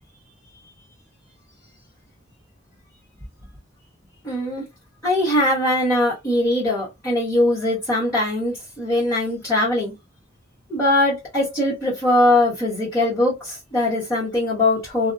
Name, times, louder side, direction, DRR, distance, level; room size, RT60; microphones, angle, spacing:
voice 1, 4.2-4.6 5.0-9.9 10.7-15.1, left 1 dB, 10° left, 1.1 m, -21 dB
2.3 x 2.3 x 2.6 m
head